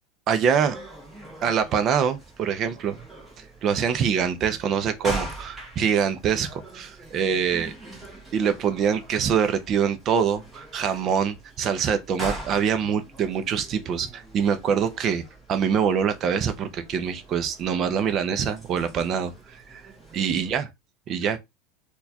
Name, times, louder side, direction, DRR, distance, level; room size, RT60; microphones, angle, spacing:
voice 1, 0.3-0.8 1.4-3.0 3.6-7.7 8.3-15.2 15.5-19.8 20.1-20.6 21.1-21.4, right 7 dB, 25° right, 0.4 m, -24 dB
sound 1, 0.6-20.6, right 1 dB, 10° right, 0.9 m, -42 dB
4.3 x 2.3 x 2.7 m
supercardioid pair, 180°, 0 cm